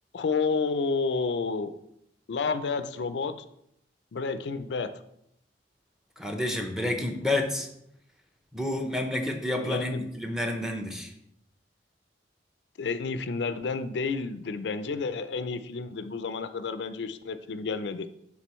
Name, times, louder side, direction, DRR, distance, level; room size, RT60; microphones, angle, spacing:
voice 1, 0.1-1.7 2.3-3.4 4.1-4.9 9.6-10.1 12.8-18.1, left 4 dB, 75° left, 11 dB, 0.4 m, -30 dB
voice 2, 6.2-7.7 8.5-11.1, left 1 dB, 5° right, 3 dB, 0.7 m, -29 dB
11.0 x 3.7 x 3.1 m, 0.76 s
head